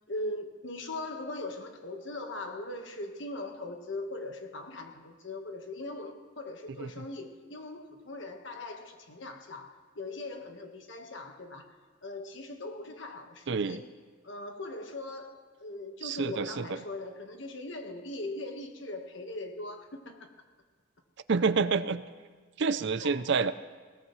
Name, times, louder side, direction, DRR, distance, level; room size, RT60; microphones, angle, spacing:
voice 1, 0.1-11.7 12.0-13.9 14.2-20.3 23.0-23.3, left 2 dB, 60° left, 5 dB, 1.3 m, -40 dB
voice 2, 13.5-13.8 16.0-16.8 21.3-22.0 22.6-23.5, right 5 dB, 55° right, 14 dB, 0.5 m, -28 dB
20.0 x 18.0 x 3.1 m, 1.5 s
head